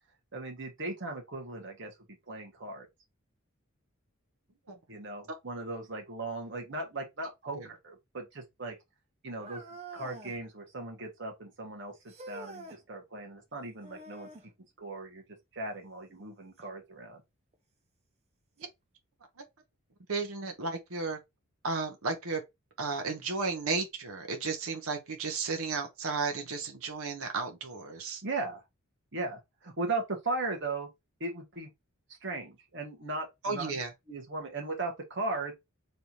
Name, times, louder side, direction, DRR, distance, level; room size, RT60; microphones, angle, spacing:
voice 1, 0.3-1.9 2.3-2.9 4.9-8.7 9.2-9.6 9.9-14.3 14.8-15.2 15.5-17.2 28.2-28.6 29.1-30.9 31.2-31.7 32.2-33.8 34.1-35.5, right 2 dB, 55° right, 1.4 m, -37 dB
sound 1, 9.4-10.4 12.1-12.8 13.8-14.5 16.6-16.7 17.5-17.6 18.6-18.7, right 2 dB, 30° right, 0.7 m, -46 dB
voice 2, 20.1-21.2 21.6-22.4 22.8-28.2 33.4-33.9, right 4 dB, 75° right, 0.9 m, -34 dB
3.4 x 2.7 x 4.3 m
head